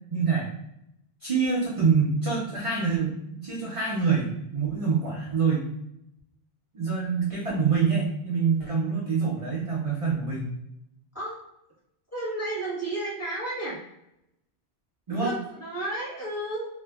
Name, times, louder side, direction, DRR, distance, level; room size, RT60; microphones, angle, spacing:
voice 1, 0.1-0.5 1.2-5.7 6.7-10.5 15.1-15.3, right 5 dB, 45° right, -4 dB, 0.4 m, -26 dB
voice 2, 12.1-13.8 15.2-16.7, right 2 dB, 15° left, -8 dB, 1.2 m, -32 dB
2.6 x 2.5 x 2.3 m, 0.82 s
omnidirectional pair, 1.1 m